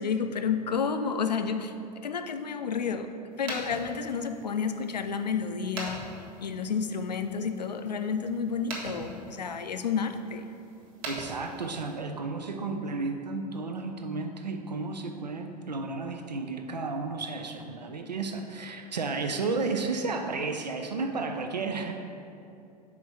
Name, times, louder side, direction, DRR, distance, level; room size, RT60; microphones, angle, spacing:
voice 1, 0.0-6.1 6.4-10.5, left 6 dB, 80° left, 8 dB, 0.5 m, -31 dB
sound 1, 3.3-12.0, right 2 dB, 40° right, 1.6 m, -43 dB
voice 2, 11.1-21.9, right 3 dB, 85° right, 5 dB, 0.4 m, -33 dB
5.7 x 4.5 x 5.6 m, 2.6 s
figure-of-eight pair, 80°, 21 cm